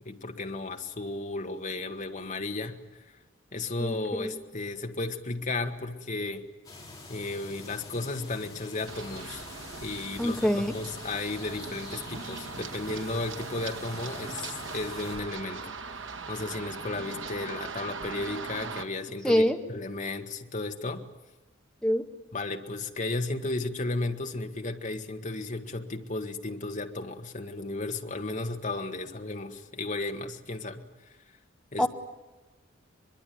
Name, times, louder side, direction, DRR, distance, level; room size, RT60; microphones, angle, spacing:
voice 1, 0.1-2.8 3.5-6.4 7.1-9.4 9.8-15.7 16.3-21.0 22.3-30.8 31.7-31.9, left 2 dB, 40° left, 4 dB, 1.8 m, -34 dB
voice 2, 3.8-4.3 10.2-10.7 19.2-19.6 21.8-22.1 31.8-31.9, equal, 5° left, 4 dB, 1.6 m, -25 dB
sound 1, 6.6-15.2, left 3 dB, 20° left, 6.2 m, -46 dB
Run, 8.9-18.8, right 4 dB, 85° right, 1.8 m, -40 dB
23.0 x 23.0 x 9.5 m, 1.2 s
head